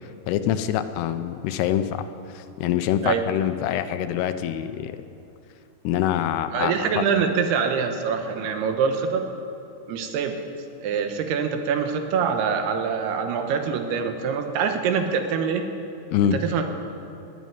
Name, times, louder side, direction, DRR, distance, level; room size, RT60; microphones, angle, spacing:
voice 1, 0.3-2.1 2.6-4.9 5.8-6.9 16.1-16.4, left 10 dB, 85° left, 10 dB, 2.7 m, -24 dB
voice 2, 6.5-9.2 9.9-10.4 10.8-15.6 16.3-16.6, right 6 dB, 80° right, 5 dB, 3.1 m, -24 dB
18.5 x 6.3 x 9.4 m, 2.8 s
omnidirectional pair, 4.6 m